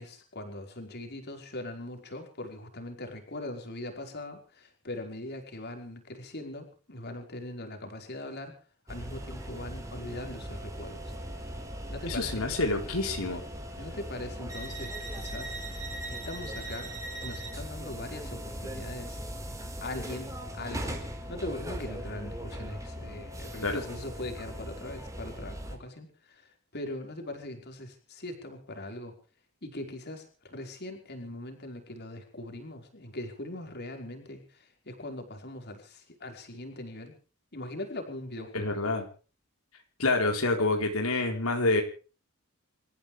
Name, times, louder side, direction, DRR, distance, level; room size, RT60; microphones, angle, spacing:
voice 1, 0.0-8.5 8.9-11.1 11.9-12.4 13.8-15.6 16.1-16.9 17.2-19.2 19.8-21.0 21.3-29.1 29.6-37.1 37.5-38.7, left 1 dB, 50° left, 4 dB, 5.0 m, -41 dB
sound 1, 8.9-25.8, equal, 15° right, 4.7 m, -39 dB
voice 2, 12.1-13.4 23.6-23.8 38.5-39.0 40.0-41.8, left 2 dB, 85° left, 3 dB, 4.3 m, -27 dB
28.0 x 15.0 x 3.4 m, 0.38 s
head